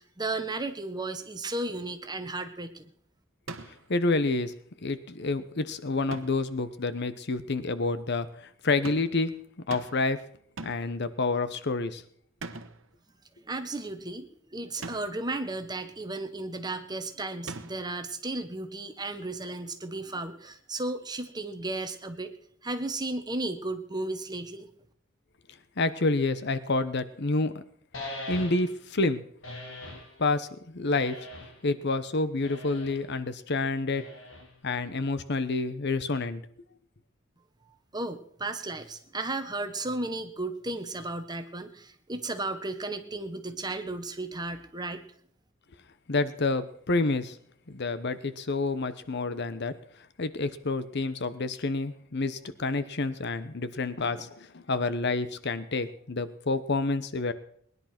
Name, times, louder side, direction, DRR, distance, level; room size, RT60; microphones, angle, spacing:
voice 1, 0.0-2.9 13.4-22.3 22.6-24.7 37.9-45.0, right 2 dB, 20° right, 8 dB, 1.4 m, -34 dB
sound 1, 3.5-3.9 6.1-6.5 8.8-9.2 9.7-10.1 10.6-11.0 12.4-12.9 14.8-15.3 17.5-18.0, right 3 dB, 70° right, 1.3 m, -41 dB
voice 2, 3.9-4.5 4.8-9.3 9.7-10.2 10.6-12.0 25.8-27.6 28.3-29.2 30.2-31.2 31.6-34.0 34.6-36.4 46.1-47.4 47.7-49.8 50.2-57.3, left 3 dB, 55° left, 13 dB, 1.0 m, -28 dB
sound 2, 27.9-28.8 29.4-30.1 30.9-31.7 32.4-33.0 33.9-34.6, left 1 dB, 75° left, 4.7 m, -41 dB
20.0 x 11.0 x 6.0 m, 0.64 s
head